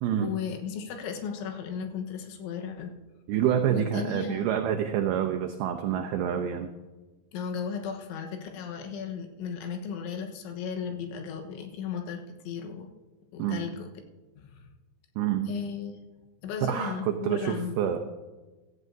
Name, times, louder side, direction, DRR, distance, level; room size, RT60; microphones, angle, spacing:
voice 1, 0.2-2.9 3.7-4.5 7.3-12.9 13.3-13.9 14.4-14.7 15.5-16.0 16.4-17.9, left 6 dB, 85° left, 3 dB, 3.6 m, -35 dB
voice 2, 3.3-6.7 13.4-13.7 15.2-15.5 16.7-18.0, right 9 dB, 90° right, 4 dB, 2.2 m, -27 dB
16.0 x 14.5 x 2.7 m, 1.2 s
omnidirectional pair, 5.4 m